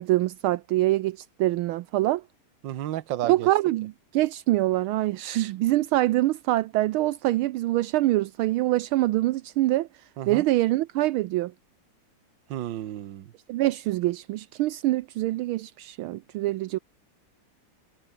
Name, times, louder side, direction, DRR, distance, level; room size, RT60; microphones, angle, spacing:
voice 1, 0.0-2.2 3.2-9.9 10.3-11.5 13.5-16.8, right 16 dB, 80° right, 1.5 m, -25 dB
voice 2, 2.6-3.5 10.2-10.5 12.5-13.3, right 13 dB, 65° right, 1.6 m, -32 dB
omnidirectional pair, 2.4 m